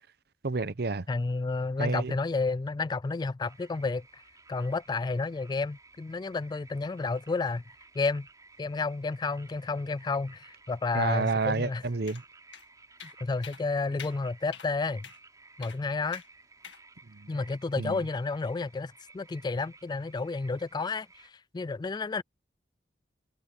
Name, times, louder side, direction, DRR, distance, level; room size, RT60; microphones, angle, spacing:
voice 1, 0.4-1.0 1.8-2.1 10.9-12.2 17.1-17.3 17.8-18.0, right 3 dB, 60° right, 0.8 m, -29 dB
voice 2, 1.1-4.0 4.5-7.6 8.0-8.3 8.6-11.8 13.2-15.1 15.6-16.2 17.3-22.2, left 3 dB, 25° left, 0.3 m, -31 dB
sound 1, 3.4-21.3, right 3 dB, 20° right, 3.8 m, -56 dB
sound 2, 12.1-12.2 12.5-12.6 13.0-13.2 13.4-13.6 14.0-14.2 14.5-14.7 15.0-15.2 15.6-15.8 16.1-16.3 16.6-16.8, left 8 dB, 75° left, 2.1 m, -45 dB
head